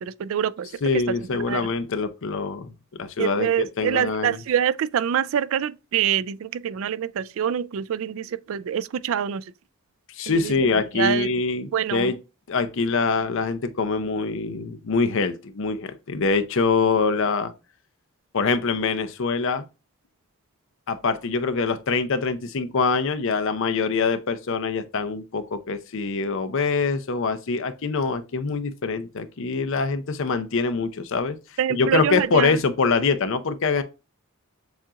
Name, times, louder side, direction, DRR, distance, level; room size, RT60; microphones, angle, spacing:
voice 1, 0.0-1.0 1.5-1.7 3.2-9.4 10.3-10.5 10.9-11.3 11.7-12.1 31.6-32.5, right 9 dB, 65° right, 0.3 m, -25 dB
voice 2, 0.8-2.7 3.0-4.4 10.1-12.2 12.5-17.5 18.3-19.6 20.9-31.4 31.7-33.8, left 4 dB, 60° left, 0.6 m, -24 dB
7.1 x 2.4 x 2.8 m
head